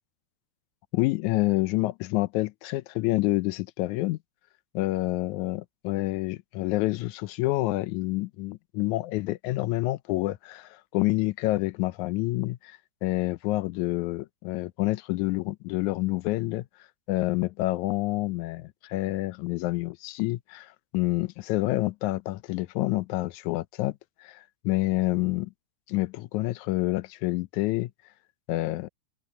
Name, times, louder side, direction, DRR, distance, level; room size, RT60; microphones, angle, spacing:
voice 1, 0.9-4.2 4.7-16.7 17.1-25.5 25.9-27.9 28.5-28.9, left 19 dB, 80° left, 1.9 m, -28 dB
open air
omnidirectional pair, 3.5 m